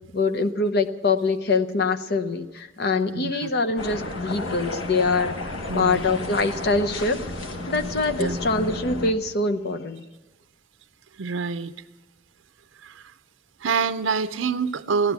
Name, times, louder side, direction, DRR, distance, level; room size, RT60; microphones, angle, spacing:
voice 1, 0.0-5.4 5.7-7.2 7.7-10.0, left 3 dB, 55° left, 10 dB, 0.8 m, -24 dB
voice 2, 3.1-3.5 5.7-6.1 8.2-8.4 11.2-11.7 12.8-13.1 13.6-15.1, right 5 dB, 80° right, 11 dB, 0.6 m, -26 dB
sound 1, 3.8-9.1, left 2 dB, 85° left, 1.4 m, -32 dB
16.0 x 11.0 x 8.2 m, 1.2 s
head